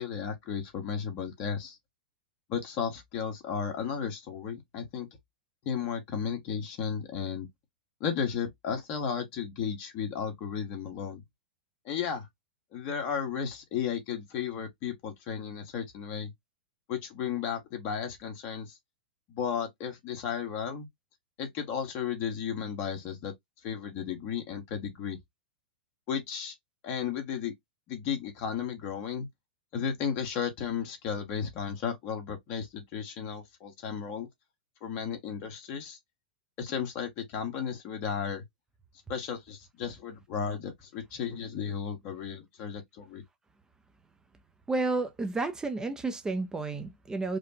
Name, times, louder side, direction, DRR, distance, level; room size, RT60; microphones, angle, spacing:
voice 1, 0.0-1.8 2.5-5.1 5.6-7.5 8.0-11.2 11.8-12.3 12.7-16.3 16.9-18.8 19.3-20.9 21.4-23.3 23.6-25.2 26.1-26.5 26.8-27.5 27.9-29.3 29.7-34.3 34.8-36.0 36.6-38.4 39.1-43.2, left 7 dB, 45° left, 1.7 m, -34 dB
voice 2, 44.7-47.4, right 3 dB, 10° right, 0.7 m, -31 dB
4.9 x 2.3 x 2.8 m
hypercardioid pair, 115°, 5 cm